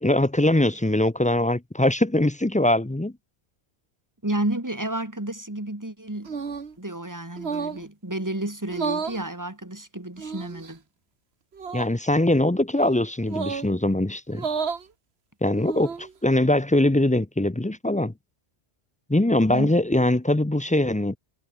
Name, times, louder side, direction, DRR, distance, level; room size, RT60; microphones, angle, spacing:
voice 1, 0.0-3.1 11.7-14.5 15.4-18.1 19.1-21.2, left 1 dB, 10° left, 0.4 m, -22 dB
voice 2, 4.2-6.4 6.8-10.8 19.5-19.7, right 1 dB, 15° right, 2.7 m, -31 dB
sound 1, 6.3-6.7 7.4-7.9 8.7-9.2 10.2-10.7 11.5-11.9 13.3-13.7 14.3-14.9 15.5-16.1, right 5 dB, 70° right, 1.8 m, -31 dB
omnidirectional pair, 1.1 m